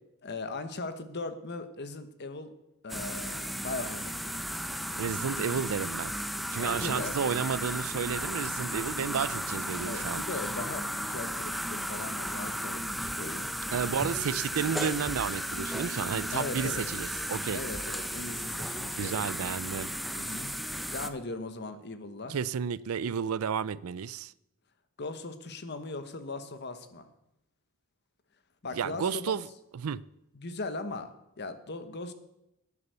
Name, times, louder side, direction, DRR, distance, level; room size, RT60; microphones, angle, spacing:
voice 1, 0.2-2.5 2.8-4.4 6.6-7.2 9.8-13.5 16.3-16.9 17.5-19.2 20.1-20.5 20.9-22.4 25.0-27.1 28.6-29.4 30.3-32.1, left 3 dB, 50° left, 1.1 m, -39 dB
sound 1, 2.9-21.1, equal, ahead, 0.7 m, -35 dB
voice 2, 5.0-6.1 6.5-10.2 13.7-17.6 19.0-19.9 22.3-24.3 28.7-29.5 29.7-30.0, right 7 dB, 85° right, 0.4 m, -32 dB
11.0 x 9.8 x 6.7 m
head